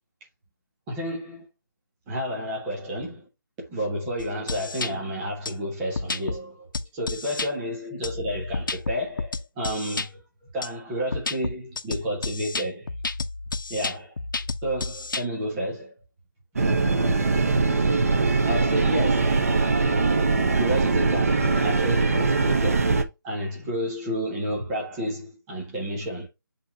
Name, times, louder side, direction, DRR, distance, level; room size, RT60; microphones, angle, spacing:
voice 1, 0.9-1.4 2.1-3.3 3.7-12.9 13.7-14.1 14.6-15.9 18.4-19.6 20.6-22.9 23.2-26.3, equal, ahead, 0.4 m, -31 dB
sound 1, 4.2-4.9 5.5-5.6 6.0-6.4 6.7-7.5 8.0-10.1 10.6-10.7 11.1-15.2, left 3 dB, 65° left, 0.9 m, -31 dB
sound 2, 16.6-23.0, right 3 dB, 40° right, 1.1 m, -22 dB
7.8 x 3.0 x 5.5 m
hypercardioid pair, 175°, 12 cm